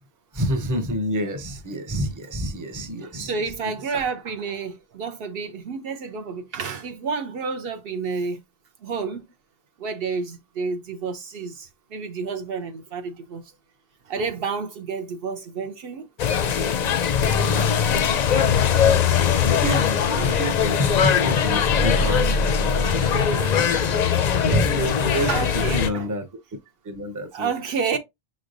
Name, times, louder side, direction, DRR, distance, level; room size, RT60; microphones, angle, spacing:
voice 1, 0.3-3.3 19.4-24.0 24.4-26.3 26.8-27.5, equal, 20° right, 0.6 m, -28 dB
voice 2, 3.0-8.4 8.8-9.3 9.8-13.5 14.1-16.1 23.1-23.5 25.3-26.1 27.3-28.0, right 5 dB, 65° right, 0.8 m, -30 dB
sound 1, 16.2-25.9, left 7 dB, 55° left, 0.5 m, -21 dB
5.9 x 3.2 x 2.5 m
omnidirectional pair, 1.1 m